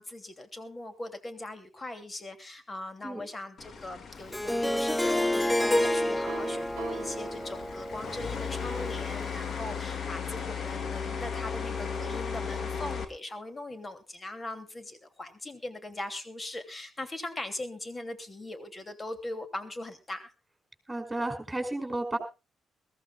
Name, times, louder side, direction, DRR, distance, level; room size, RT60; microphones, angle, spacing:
voice 1, 0.0-20.3, left 1 dB, 25° left, 9 dB, 2.9 m, -40 dB
sound 1, 3.6-13.0, left 6 dB, 45° left, 2.1 m, -37 dB
Harp, 4.3-9.3, left 1 dB, 10° left, 0.6 m, -29 dB
Piano, 5.8-8.1, right 9 dB, 65° right, 1.2 m, -43 dB
voice 2, 20.9-22.2, right 2 dB, 10° right, 7 dB, 5.2 m, -32 dB
22.0 x 15.0 x 2.4 m, 0.30 s
figure-of-eight pair, 40°, 0 cm